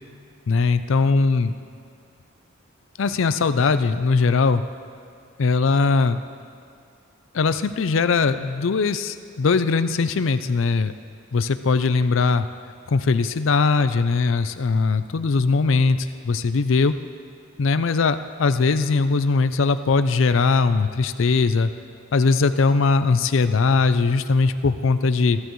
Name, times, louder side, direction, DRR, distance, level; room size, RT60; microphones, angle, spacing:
voice 1, 0.5-1.5 3.0-4.6 5.4-6.2 7.3-10.9 11.3-12.5 12.9-16.9 17.6-21.7 22.1-25.4, left 4 dB, 70° left, 11 dB, 0.5 m, -20 dB
21.5 x 13.0 x 3.1 m, 2.4 s
head